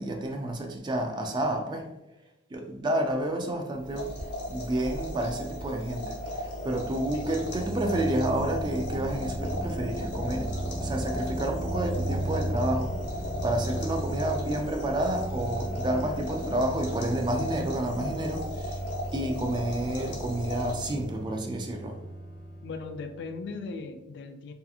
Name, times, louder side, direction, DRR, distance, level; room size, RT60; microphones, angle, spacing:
voice 1, 0.0-1.9 2.5-4.1 4.5-10.5 10.8-13.0 13.4-18.8 19.1-22.0, right 1 dB, 25° right, 4 dB, 0.3 m, -30 dB
sound 1, 3.8-21.2, equal, 90° left, 0.9 m, -36 dB
sound 2, 7.0-23.3, right 1 dB, 5° left, 0.7 m, -36 dB
voice 2, 22.6-24.5, left 4 dB, 65° left, 7 dB, 0.3 m, -38 dB
2.7 x 2.4 x 2.4 m, 0.95 s
head